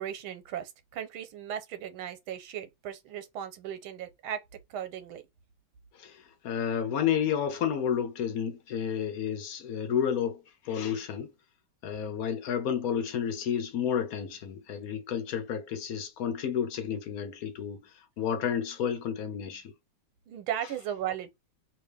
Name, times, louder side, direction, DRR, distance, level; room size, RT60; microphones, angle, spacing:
voice 1, 0.0-4.4 4.7-5.2 20.3-21.4, right 10 dB, 90° right, 1.6 m, -36 dB
voice 2, 5.9-11.3 11.8-17.9 18.2-19.7, left 8 dB, 60° left, 1.0 m, -31 dB
3.2 x 2.8 x 3.3 m
omnidirectional pair, 2.2 m